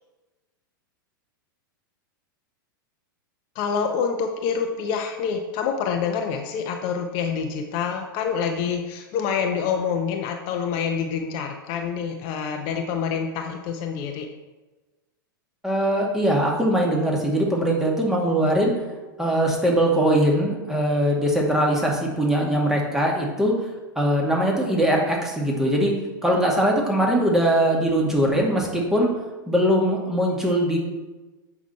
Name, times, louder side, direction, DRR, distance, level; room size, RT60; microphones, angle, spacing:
voice 1, 3.5-14.3, left 6 dB, 45° left, 4 dB, 0.8 m, -27 dB
voice 2, 15.6-18.7 19.2-23.5 24.0-25.9 26.2-29.1 29.5-30.8, right 1 dB, 5° right, -2 dB, 2.1 m, -21 dB
8.2 x 5.9 x 4.3 m, 1.2 s
hypercardioid pair, 100°, 12 cm